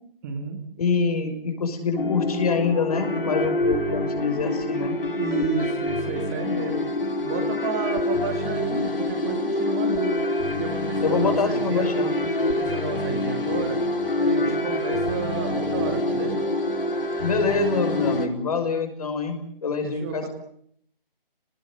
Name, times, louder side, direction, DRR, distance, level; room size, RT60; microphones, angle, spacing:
voice 1, 0.2-0.6 5.2-6.8 7.2-10.3 10.6-11.9 12.4-13.8 14.2-16.4 19.8-20.3, right 5 dB, 20° right, 4 dB, 2.3 m, -31 dB
voice 2, 0.8-5.0 11.0-12.1 17.2-20.3, left 4 dB, 40° left, 6 dB, 5.9 m, -25 dB
sound 1, 2.0-18.3, left 2 dB, 70° left, 5.1 m, -26 dB
29.0 x 20.0 x 7.8 m, 0.66 s
figure-of-eight pair, 160°, 29 cm